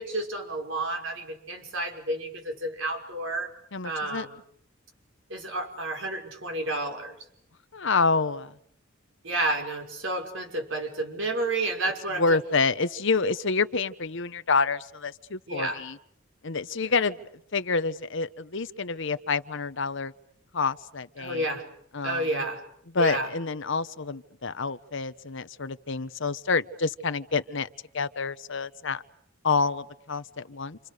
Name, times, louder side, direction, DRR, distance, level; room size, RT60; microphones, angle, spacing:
voice 1, 0.0-3.5 3.8-4.3 5.3-7.1 9.2-12.2 15.5-15.8 16.8-16.9 21.2-21.6 22.0-22.6 23.0-23.3, right 2 dB, 65° right, 3 dB, 6.0 m, -30 dB
voice 2, 3.7-4.3 7.7-8.5 12.2-16.0 16.4-17.2 17.5-20.1 20.5-21.4 21.9-22.3 22.9-27.7 27.9-29.0 29.4-30.8, left 4 dB, 65° left, 12 dB, 1.1 m, -28 dB
29.5 x 27.5 x 6.7 m, 0.67 s
head